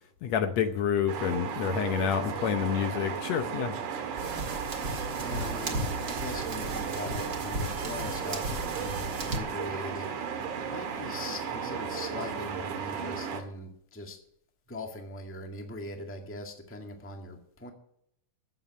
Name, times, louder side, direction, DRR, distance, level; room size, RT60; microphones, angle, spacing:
voice 1, 0.2-3.7, left 8 dB, 70° left, 8 dB, 1.9 m, -28 dB
sound 1, 1.1-13.4, right 7 dB, 80° right, 3.0 m, -35 dB
sound 2, 4.2-9.4, right 1 dB, 35° right, 1.9 m, -36 dB
voice 2, 5.1-10.1 10.4-14.2 14.7-17.7, left 2 dB, 5° left, 3 dB, 1.3 m, -41 dB
14.0 x 8.0 x 7.4 m, 0.72 s
omnidirectional pair, 3.5 m